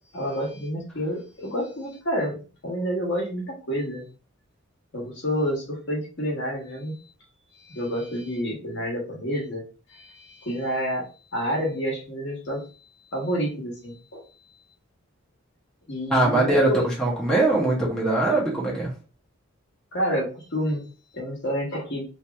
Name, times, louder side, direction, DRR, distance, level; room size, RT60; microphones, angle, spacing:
voice 1, 0.1-4.0 4.9-6.9 7.6-9.6 9.9-12.6 13.1-14.2 15.9-17.2 19.9-20.8 21.1-22.0, equal, 55° left, 1.2 m, -29 dB
voice 2, 16.1-18.9, right 2 dB, 5° left, 0.9 m, -22 dB
2.9 x 2.6 x 3.4 m
head